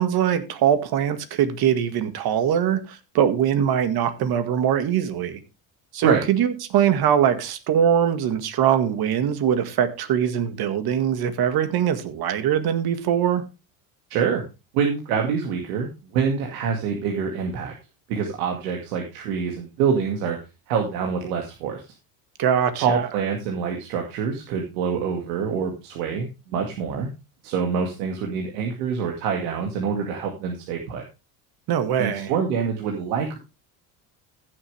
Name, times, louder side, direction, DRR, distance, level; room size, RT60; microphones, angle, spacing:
voice 1, 0.0-5.4 5.9-13.4 22.4-23.0 31.7-32.3, right 9 dB, 60° right, 2.0 m, -22 dB
voice 2, 14.1-14.4 14.7-17.7 18.1-20.4 20.7-21.8 22.8-27.1 27.4-31.0 32.0-33.4, right 6 dB, 90° right, 2.3 m, -25 dB
15.5 x 7.6 x 3.4 m
supercardioid pair, 105°, 43 cm